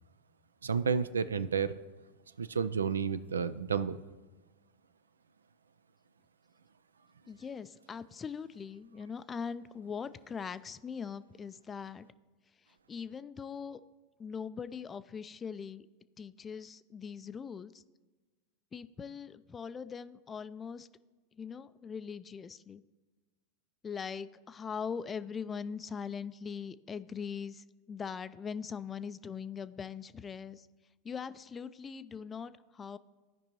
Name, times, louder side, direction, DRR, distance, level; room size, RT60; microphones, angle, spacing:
voice 1, 0.6-1.7 2.4-4.0, right 6 dB, 85° right, 15 dB, 0.3 m, -31 dB
voice 2, 7.3-12.1 12.9-13.8 14.2-15.9 16.2-17.7 18.7-20.9 21.4-22.8 23.8-30.7 31.0-33.0, left 6 dB, 25° left, 15 dB, 0.3 m, -41 dB
15.0 x 5.2 x 3.0 m, 1.3 s
hypercardioid pair, 90°, 0 cm